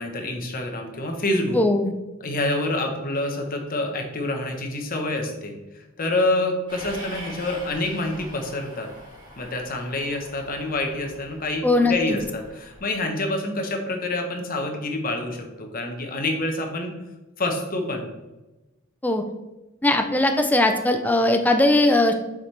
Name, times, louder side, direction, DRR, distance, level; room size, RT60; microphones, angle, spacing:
voice 1, 0.0-1.6 2.2-8.9 9.4-16.9 17.4-18.1, left 2 dB, 45° left, 4 dB, 1.0 m, -27 dB
voice 2, 1.5-1.9 11.6-12.2 19.0-19.2 19.8-22.1, left 2 dB, 10° left, 6 dB, 0.5 m, -19 dB
Train, 6.7-13.0, equal, 25° right, 1.8 m, -43 dB
6.9 x 5.1 x 3.3 m, 1.1 s
head